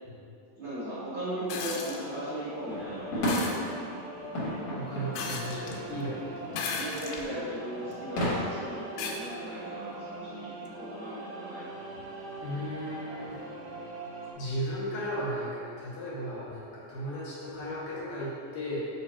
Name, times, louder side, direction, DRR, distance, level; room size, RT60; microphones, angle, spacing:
voice 1, 0.6-3.7 6.7-11.7, right 1 dB, 65° right, -12 dB, 1.2 m, -37 dB
sound 1, 1.5-2.0 3.3-3.6 5.2-5.8 6.5-7.3 7.9-8.0 9.0-9.2 10.7-10.8, left 5 dB, 90° left, 2.4 m, -35 dB
sound 2, 1.7-14.3, right 2 dB, 90° right, 1.3 m, -42 dB
sound 3, 2.7-8.3, equal, 45° left, 1.8 m, -34 dB
voice 2, 4.7-6.7 12.4-13.4 14.4-18.8, equal, 70° left, -6 dB, 2.4 m, -35 dB
7.3 x 3.1 x 4.3 m, 2.5 s
omnidirectional pair, 4.0 m